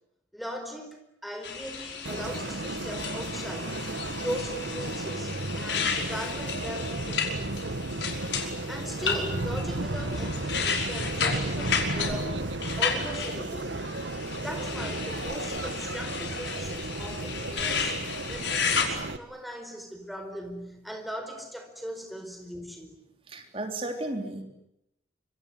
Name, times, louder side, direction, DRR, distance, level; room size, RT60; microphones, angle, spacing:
voice 1, 0.3-0.9 1.2-3.8 4.2-7.8 8.7-12.4 12.8-13.9 14.4-18.0 18.3-23.0, equal, ahead, 5 dB, 4.7 m, -39 dB
sound 1, 1.4-18.9, left 6 dB, 80° left, 5.4 m, -33 dB
sound 2, 2.0-19.2, right 2 dB, 90° right, 1.6 m, -34 dB
voice 2, 23.3-24.4, right 1 dB, 30° right, 5 dB, 3.7 m, -34 dB
26.0 x 24.5 x 9.4 m, 0.82 s
head